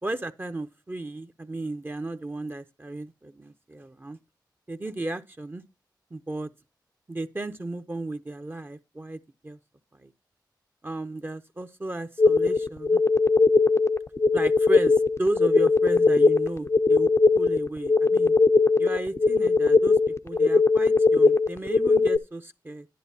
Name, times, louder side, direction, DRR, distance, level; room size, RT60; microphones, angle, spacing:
voice 1, 0.0-4.2 4.7-5.6 6.1-6.5 7.1-9.6 9.9-10.1 10.8-13.0 14.3-18.3 18.8-20.0 20.2-22.9, right 2 dB, 30° right, 0.7 m, -34 dB
sound 1, 12.2-22.2, left 4 dB, 35° left, 0.5 m, -20 dB
10.5 x 10.5 x 2.8 m
cardioid pair, 60°, 8 cm